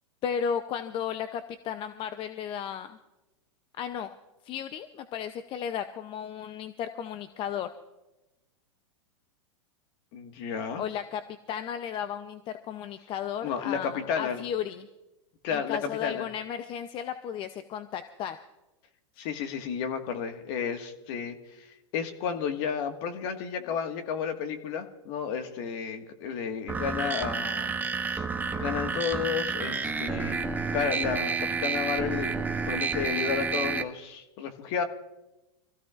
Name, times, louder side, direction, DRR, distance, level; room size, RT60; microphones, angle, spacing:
voice 1, 0.2-3.0 3.8-4.1 4.4-7.7 10.8-11.2 11.5-14.9 15.5-18.4 19.2-19.3, left 8 dB, 30° left, 10 dB, 0.7 m, -34 dB
voice 2, 10.1-10.8 13.4-14.4 15.4-16.3 19.2-27.8 28.0-30.5 30.7-32.4 32.7-34.8, left 7 dB, 50° left, 6 dB, 1.8 m, -32 dB
sound 1, 26.7-33.8, right 5 dB, 10° right, 0.8 m, -30 dB
25.0 x 16.0 x 2.5 m, 0.99 s
hypercardioid pair, 125°, 16 cm